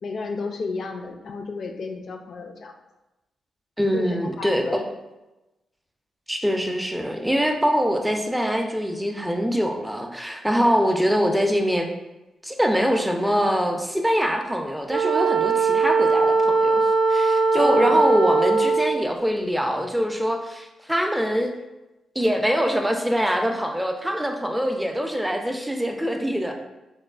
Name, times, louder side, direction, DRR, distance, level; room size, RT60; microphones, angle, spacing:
voice 1, 0.0-2.7 3.9-4.8 17.6-18.0, left 3 dB, 60° left, 4 dB, 0.3 m, -32 dB
voice 2, 3.8-4.6 6.3-11.9 12.4-21.5 22.2-26.5, equal, 5° right, 3 dB, 0.4 m, -23 dB
Wind instrument woodwind instrument, 14.9-19.1, right 4 dB, 75° right, 0.4 m, -20 dB
3.0 x 2.0 x 2.4 m, 1.0 s
supercardioid pair, 55°, 0 cm